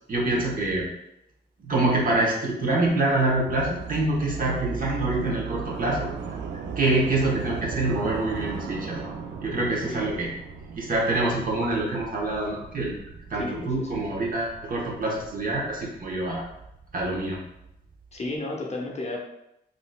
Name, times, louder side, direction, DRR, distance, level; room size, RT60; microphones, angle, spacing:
voice 1, 0.1-0.9 1.6-6.1 6.8-9.1 9.4-10.3 10.8-12.9 13.3-16.4 16.9-17.4, right 2 dB, 50° right, -3 dB, 0.9 m, -26 dB
sound 1, 3.4-18.3, right 6 dB, 80° right, 0.4 m, -37 dB
voice 2, 9.9-10.2 13.3-14.0 18.1-19.2, left 2 dB, 35° left, 0 dB, 0.6 m, -33 dB
3.8 x 2.5 x 2.3 m, 0.84 s
cardioid pair, 95°, 18 cm